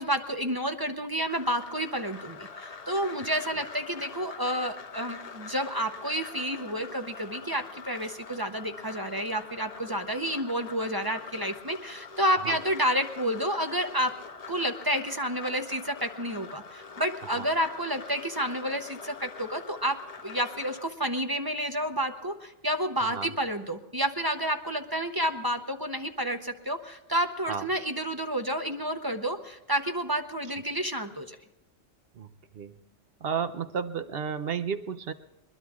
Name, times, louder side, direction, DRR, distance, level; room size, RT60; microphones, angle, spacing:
voice 1, 0.0-14.1 14.5-20.0 20.2-31.4, equal, 25° right, 6 dB, 0.6 m, -30 dB
sound 1, 1.3-20.9, left 5 dB, 40° left, 0.7 m, -44 dB
voice 2, 33.2-35.1, right 6 dB, 60° right, 9 dB, 0.8 m, -32 dB
23.5 x 21.0 x 2.4 m, 1.0 s
omnidirectional pair, 1.3 m